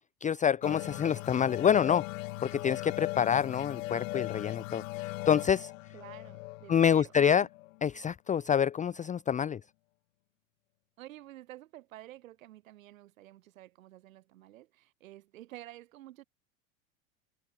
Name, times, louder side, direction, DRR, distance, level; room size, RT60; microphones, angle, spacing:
voice 1, 0.2-2.1 2.4-5.7 6.7-7.5 7.8-9.6, left 8 dB, 20° left, 0.7 m, -27 dB
sound 1, 0.6-7.9, left 20 dB, 70° left, 0.9 m, -39 dB
voice 2, 5.9-7.3 11.0-16.2, right 15 dB, 80° right, 4.0 m, -50 dB
hypercardioid pair, 95°, 40 cm